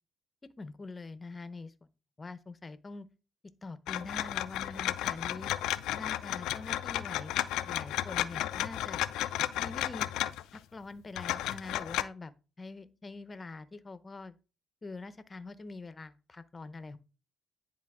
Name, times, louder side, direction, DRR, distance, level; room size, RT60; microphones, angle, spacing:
voice 1, 0.6-1.7 2.2-3.1 3.6-5.5 5.9-7.4 7.6-9.0 9.6-10.1 10.5-12.3 12.6-14.4 14.8-17.0, left 3 dB, 25° left, 0.7 m, -44 dB
sound 1, 3.9-10.6 11.2-12.0, left 13 dB, 90° left, 0.3 m, -33 dB
10.0 x 4.1 x 3.6 m
cardioid pair, 95°, 0 cm